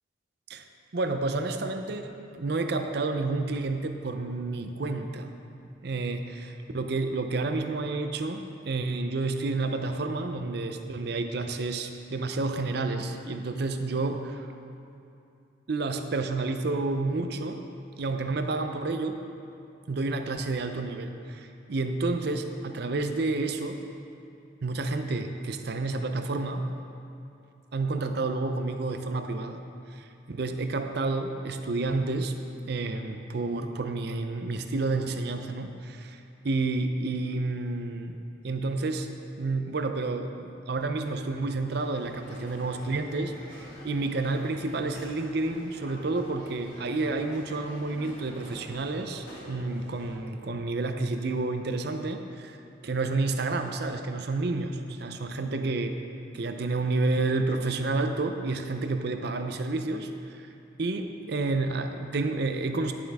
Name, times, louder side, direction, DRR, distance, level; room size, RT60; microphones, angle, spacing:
voice 1, 0.9-5.3 5.8-14.5 15.7-17.6 18.0-19.2 19.9-23.8 24.6-26.6 27.7-29.6 29.9-32.4 32.7-38.2 38.4-39.1 39.4-52.6 52.8-56.0 56.3-60.5 60.8-62.9, right 3 dB, 55° right, 7 dB, 0.5 m, -30 dB
sound 1, 41.7-50.2, left 1 dB, 75° left, 2.1 m, -47 dB
11.0 x 7.4 x 3.5 m, 2.6 s
head